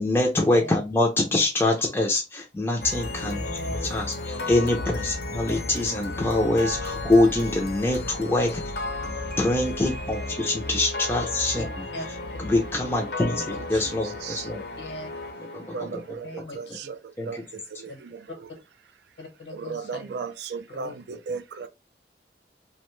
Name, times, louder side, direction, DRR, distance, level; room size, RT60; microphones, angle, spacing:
voice 1, 0.0-3.4 3.8-8.6 9.4-11.9 12.4-14.6 15.5-16.0 17.2-17.4, left 2 dB, 10° left, 0.4 m, -24 dB
sound 1, 2.8-16.1, left 2 dB, 65° left, 0.6 m, -34 dB
voice 2, 3.3-3.9 4.2-4.4 5.5-5.6 9.0-9.2 10.2-10.7 11.5-11.7 11.9-12.1 13.3-13.6 14.8-15.1 16.2-16.9 17.9-18.0 19.2-20.3 20.7-21.0, left 1 dB, 80° left, 0.9 m, -39 dB
voice 3, 13.7-14.5 15.6-18.3 19.5-21.7, right 5 dB, 75° right, 0.3 m, -36 dB
2.6 x 2.1 x 3.0 m
head